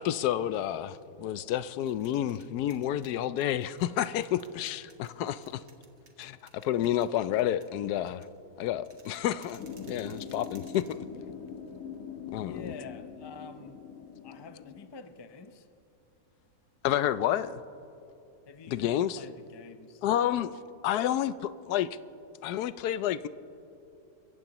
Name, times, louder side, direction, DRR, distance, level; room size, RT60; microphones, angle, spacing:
voice 1, 0.0-5.6 6.2-8.3 8.6-10.8 12.3-12.7 16.8-17.6 18.7-19.2 20.0-20.5 20.8-21.9 22.4-23.3, left 11 dB, 80° left, 15 dB, 1.1 m, -30 dB
sound 1, 1.6-12.0, right 4 dB, 45° right, 1.6 m, -61 dB
sound 2, 9.6-14.9, left 6 dB, 60° left, 1.5 m, -43 dB
voice 2, 12.3-13.8 14.2-15.7 18.5-20.5, left 4 dB, 45° left, 9 dB, 0.3 m, -47 dB
30.0 x 15.0 x 3.0 m, 2.9 s
omnidirectional pair, 1.7 m